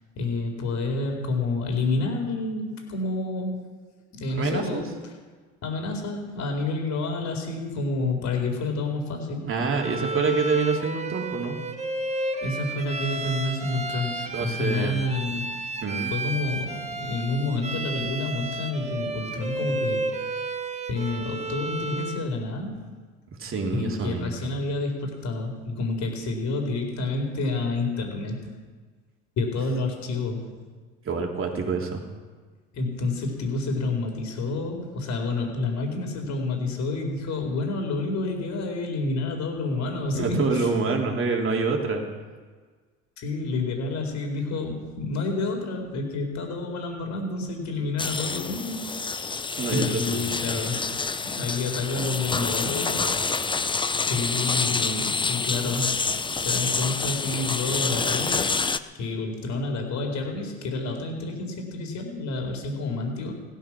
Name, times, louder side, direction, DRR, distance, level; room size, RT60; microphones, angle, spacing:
voice 1, 0.2-3.6 4.1-4.9 5.6-9.5 12.4-15.6 16.1-20.1 20.9-22.9 23.7-28.4 29.4-30.6 32.7-40.7 43.2-49.2 49.7-53.1 54.1-56.1 56.4-63.3, left 3 dB, 50° left, 3 dB, 4.2 m, -29 dB
voice 2, 4.3-4.8 9.5-11.6 14.3-15.0 15.8-16.1 23.4-24.5 31.0-32.0 40.1-42.0 49.6-50.6, right 4 dB, 35° right, 1 dB, 3.3 m, -27 dB
Bowed string instrument, 9.8-22.3, right 2 dB, 20° right, 1.5 m, -32 dB
sound 1, 48.0-58.8, left 4 dB, 15° left, 0.7 m, -27 dB
16.0 x 12.5 x 6.2 m, 1.5 s
hypercardioid pair, 80°, 35 cm